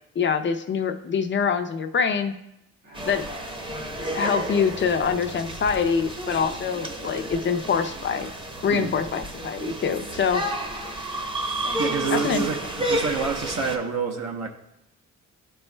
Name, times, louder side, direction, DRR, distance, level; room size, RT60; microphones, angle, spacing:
voice 1, 0.2-2.3 3.1-3.3 4.1-8.3 8.6-10.4 12.1-12.4, left 6 dB, 40° left, 7 dB, 0.5 m, -24 dB
Bowed string instrument, 2.8-7.3, left 2 dB, 80° right, 2.2 m, -49 dB
sound 1, 2.9-13.8, right 1 dB, 15° right, 0.9 m, -31 dB
voice 2, 11.8-14.5, right 5 dB, 60° right, 2 dB, 1.0 m, -27 dB
11.5 x 4.4 x 2.2 m, 0.83 s
cardioid pair, 90°, 30 cm